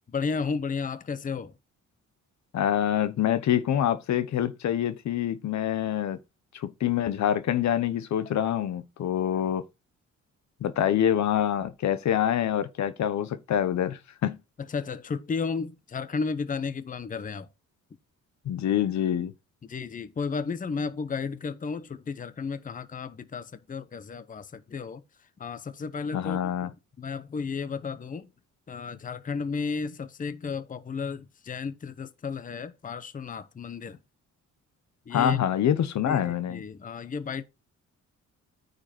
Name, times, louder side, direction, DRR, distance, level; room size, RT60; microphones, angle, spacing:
voice 1, 0.1-1.6 14.6-17.5 19.6-25.0 25.4-28.3 28.7-34.0 35.1-35.4 36.0-37.4, left 5 dB, 25° left, 0.8 m, -33 dB
voice 2, 2.5-6.2 6.5-9.6 10.6-14.4 18.4-19.3 26.1-26.7 35.1-36.6, left 10 dB, 65° left, 1.1 m, -26 dB
9.5 x 5.2 x 4.4 m
cardioid pair, 120°, 30 cm